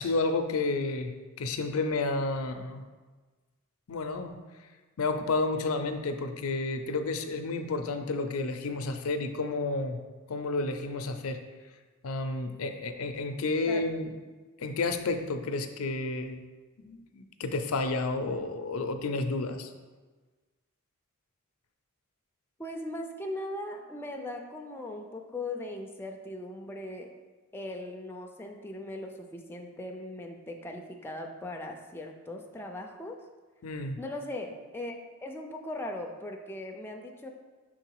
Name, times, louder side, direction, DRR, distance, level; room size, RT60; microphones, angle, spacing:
voice 1, 0.0-2.8 3.9-4.4 5.0-10.0 10.3-11.4 12.0-14.1 14.6-16.4 16.8-19.7 33.6-34.0, left 3 dB, 75° left, 7 dB, 0.5 m, -31 dB
voice 2, 22.6-27.1 27.5-33.2 34.0-37.3, left 1 dB, 10° left, 2 dB, 0.4 m, -39 dB
6.2 x 3.9 x 4.6 m, 1.3 s
head